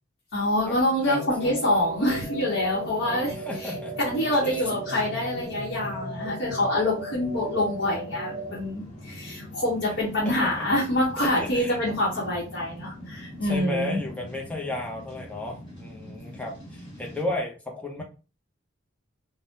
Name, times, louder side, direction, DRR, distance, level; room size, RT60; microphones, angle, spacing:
voice 1, 0.3-14.0, left 1 dB, 60° left, -6 dB, 0.9 m, -26 dB
voice 2, 1.0-1.5 3.3-3.9 4.4-4.8 10.2-10.6 11.2-11.8 13.4-18.0, left 2 dB, 5° left, 0 dB, 0.6 m, -33 dB
sound 1, 1.2-8.6, equal, 45° right, 0.9 m, -36 dB
sound 2, 1.6-17.2, equal, 25° left, 1.2 m, -44 dB
3.5 x 2.1 x 2.7 m, 0.34 s
head